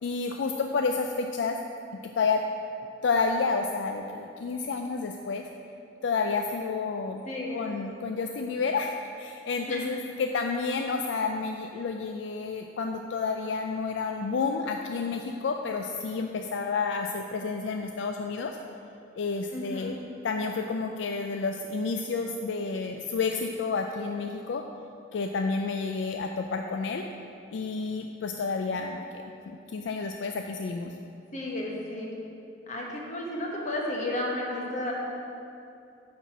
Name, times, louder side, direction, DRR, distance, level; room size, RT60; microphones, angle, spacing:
voice 1, 0.0-1.6 2.0-2.4 3.0-5.5 6.0-7.2 7.5-18.6 19.2-19.9 20.2-24.6 25.1-27.1 27.5-29.1 29.5-30.9, left 4 dB, 70° left, 4 dB, 0.4 m, -30 dB
voice 2, 7.3-7.7 9.7-9.8 19.5-19.9 31.3-32.2 32.7-34.9, left 1 dB, 40° left, -2 dB, 1.3 m, -33 dB
9.2 x 4.3 x 6.0 m, 2.7 s
head